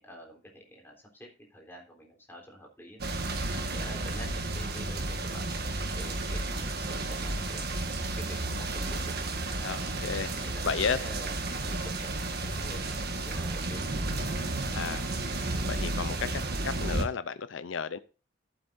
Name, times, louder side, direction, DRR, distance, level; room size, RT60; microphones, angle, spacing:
voice 1, 0.0-3.0 3.6-4.3 4.5-5.6 5.9-7.6 8.2-9.9 10.4-15.0, equal, 10° left, -1 dB, 3.7 m, -48 dB
sound 1, 3.0-17.0, right 2 dB, 55° right, 1.6 m, -32 dB
voice 2, 9.6-11.0 14.7-15.0 15.7-18.0, left 6 dB, 90° left, 14 dB, 0.6 m, -33 dB
15.0 x 8.2 x 2.6 m, 0.33 s
head